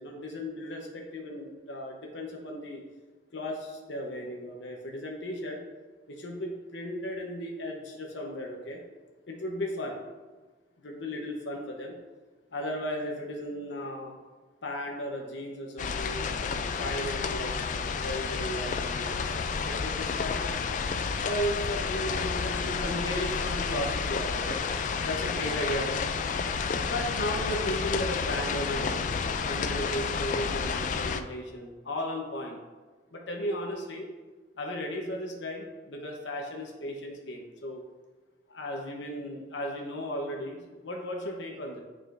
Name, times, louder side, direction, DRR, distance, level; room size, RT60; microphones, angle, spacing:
voice 1, 0.0-2.8 3.3-5.6 6.1-8.8 9.3-10.0 10.8-12.0 12.5-14.1 14.6-16.5 16.8-20.4 21.2-24.6 25.0-26.0 26.8-29.1 29.4-32.6 33.1-34.1 34.6-37.8 38.5-41.8, equal, 85° left, 0 dB, 0.9 m, -35 dB
sound 1, 15.8-31.2, left 5 dB, 45° left, 0.3 m, -30 dB
8.9 x 5.0 x 2.5 m, 1.3 s
head